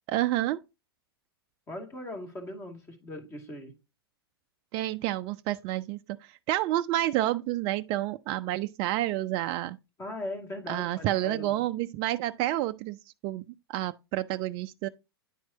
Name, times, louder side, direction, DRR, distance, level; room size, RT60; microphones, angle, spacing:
voice 1, 0.1-0.6 4.7-9.8 10.7-13.0 13.2-13.4 13.7-14.9, right 15 dB, 35° right, 0.3 m, -29 dB
voice 2, 1.7-3.8 10.0-11.6, left 1 dB, 20° left, 2.1 m, -39 dB
9.8 x 4.5 x 2.8 m
figure-of-eight pair, 105°, 13 cm